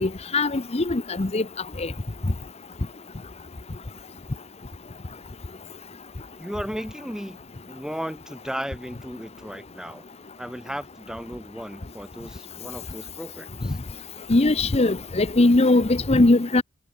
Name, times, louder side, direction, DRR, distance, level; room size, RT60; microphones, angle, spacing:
voice 1, 0.0-1.4 1.8-1.9 14.3-16.6, left 2 dB, 30° left, 0.7 m, -20 dB
voice 2, 6.4-7.4 7.7-10.0 10.4-13.8, equal, 5° right, 3.4 m, -35 dB
head